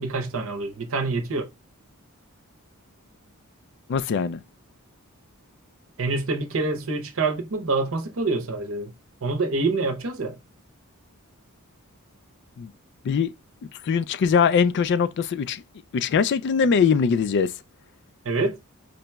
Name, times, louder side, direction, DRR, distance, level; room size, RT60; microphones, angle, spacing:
voice 1, 0.0-1.5 6.0-8.9 9.2-10.4 18.2-18.6, right 3 dB, 65° right, 0.8 m, -26 dB
voice 2, 3.9-4.4 12.6-12.7 13.0-13.3 13.8-15.6 15.9-17.5, left 6 dB, 50° left, 0.3 m, -21 dB
5.2 x 2.9 x 2.2 m
head